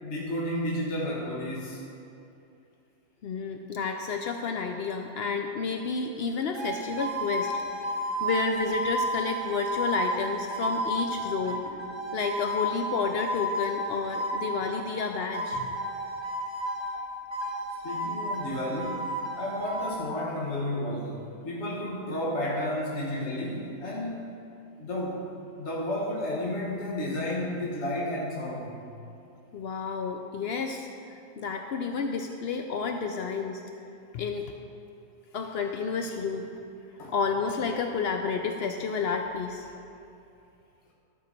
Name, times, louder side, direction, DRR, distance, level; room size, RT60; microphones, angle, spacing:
voice 1, 0.0-1.8 17.8-19.1 19.4-24.3 24.8-25.3 25.6-28.9 37.0-37.1, left 1 dB, 45° left, -4 dB, 1.4 m, -32 dB
voice 2, 3.2-7.5 8.2-11.6 12.1-15.7 29.5-33.6 34.1-34.5 35.3-36.6 37.1-39.7, left 5 dB, 80° left, 4 dB, 0.5 m, -30 dB
sound 1, 6.5-14.8 15.3-17.0 17.3-19.9, right 1 dB, 20° right, 1.3 m, -32 dB
12.0 x 5.5 x 6.6 m, 2.6 s
omnidirectional pair, 1.7 m